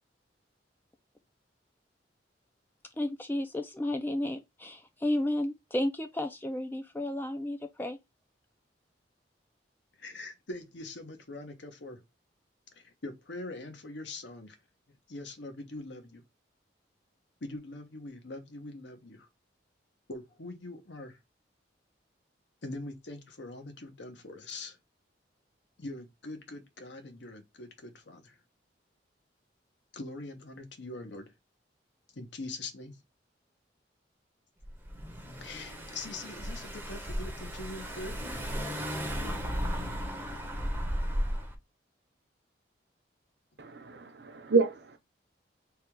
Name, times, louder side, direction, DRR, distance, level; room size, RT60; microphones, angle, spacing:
voice 1, 3.0-8.0, left 1 dB, 10° left, 0.3 m, -32 dB
voice 2, 10.0-12.0 12.7-14.6 15.1-16.2 17.4-19.3 20.1-21.2 22.6-24.8 25.8-28.4 29.9-31.3 32.1-33.0 35.4-38.2, left 2 dB, 70° left, 0.9 m, -43 dB
Car / Engine, 34.6-41.6, equal, 10° right, 0.7 m, -35 dB
voice 3, 43.6-45.0, right 4 dB, 60° right, 0.7 m, -28 dB
3.4 x 2.3 x 4.4 m
head